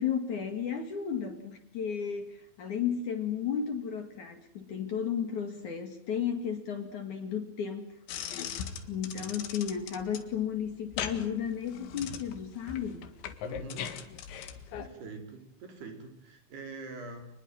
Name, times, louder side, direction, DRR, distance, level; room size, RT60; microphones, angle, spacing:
voice 1, 0.0-7.9 8.2-8.5 8.9-13.1, left 8 dB, 50° left, 7 dB, 3.1 m, -33 dB
sound 1, 8.1-14.9, left 8 dB, 85° left, 4.2 m, -40 dB
voice 2, 13.4-13.9 14.8-17.3, right 3 dB, 65° right, 5 dB, 6.5 m, -44 dB
28.5 x 21.0 x 9.1 m, 0.70 s
omnidirectional pair, 5.1 m